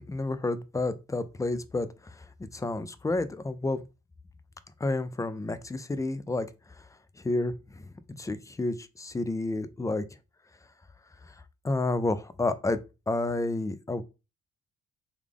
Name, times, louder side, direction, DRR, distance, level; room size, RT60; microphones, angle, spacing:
voice 1, 0.0-2.2 2.5-3.8 4.8-6.5 7.2-10.0 11.3-11.4 11.6-12.8 13.1-14.0, left 2 dB, 10° left, 0.3 m, -30 dB
3.3 x 2.4 x 3.5 m
cardioid pair, 90°, 30 cm